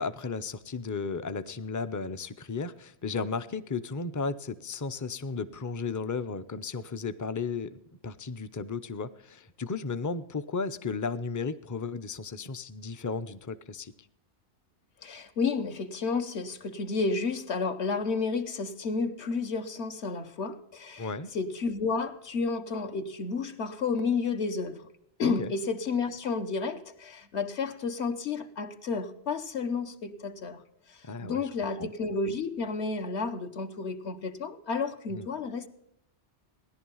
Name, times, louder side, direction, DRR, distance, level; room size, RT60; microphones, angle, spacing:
voice 1, 0.0-7.8 8.0-13.9 21.0-21.3 25.2-25.5 31.0-31.4 31.8-31.9 35.1-35.3, left 4 dB, 25° left, 0.4 m, -34 dB
voice 2, 15.0-24.9 25.2-30.6 30.9-35.7, left 4 dB, 70° left, 1.3 m, -31 dB
17.0 x 11.0 x 5.5 m
omnidirectional pair, 1.2 m